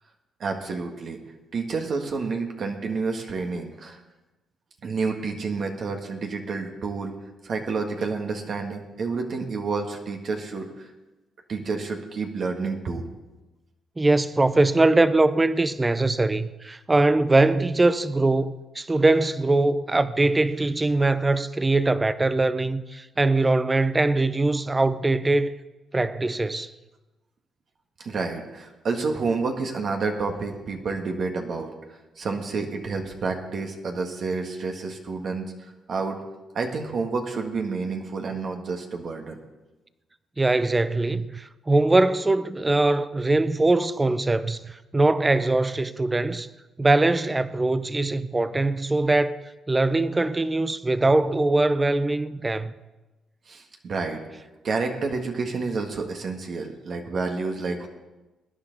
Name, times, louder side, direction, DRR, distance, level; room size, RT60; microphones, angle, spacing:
voice 1, 0.4-1.2 1.5-4.0 4.8-7.1 7.4-10.9 11.5-13.1 28.0-31.7 32.2-36.2 36.5-39.4 53.5-57.9, right 4 dB, 55° right, 1.6 m, -29 dB
voice 2, 14.0-25.5 25.9-26.7 40.4-46.5 46.8-49.4 49.7-52.7, right 2 dB, 20° right, 0.6 m, -22 dB
20.0 x 10.0 x 4.0 m
cardioid pair, 90°, 0 cm